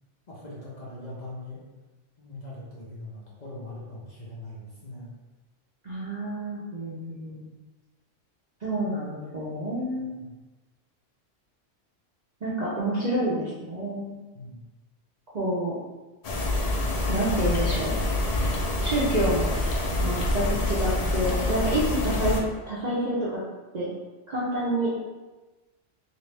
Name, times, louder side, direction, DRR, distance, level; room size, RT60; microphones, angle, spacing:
voice 1, 0.3-1.6 2.2-5.1 10.0-10.3 14.3-14.6, left 1 dB, 40° left, -6 dB, 0.7 m, -41 dB
voice 2, 5.8-7.5 8.6-10.1 12.4-14.2 15.3-15.8 17.1-18.0 18.8-19.6 20.0-22.4 22.7-23.4 23.7-23.9 24.3-24.9, right 1 dB, 45° right, -7 dB, 0.6 m, -28 dB
sound 1, 16.2-22.4, left 2 dB, 75° left, 0.3 m, -26 dB
3.0 x 2.9 x 3.2 m, 1.2 s
omnidirectional pair, 1.3 m